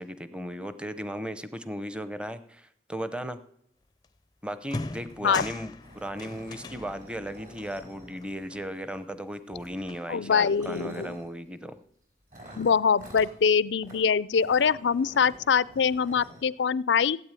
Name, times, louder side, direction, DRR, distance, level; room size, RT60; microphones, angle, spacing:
voice 1, 0.0-3.4 4.4-11.7, equal, 5° right, 12 dB, 0.8 m, -36 dB
sound 1, 4.0-4.2 4.6-9.2 9.5-10.5, left 3 dB, 20° left, 0.5 m, -41 dB
sound 2, 5.1-5.2 5.4-5.5 5.8-8.6 9.6-9.8 10.3-11.3 12.3-13.3 13.8-14.0 14.3-16.4, right 1 dB, 50° right, 4.8 m, -48 dB
voice 2, 10.1-11.2 12.6-17.2, left 6 dB, 85° left, 20 dB, 0.5 m, -24 dB
16.0 x 8.8 x 9.0 m, 0.76 s
head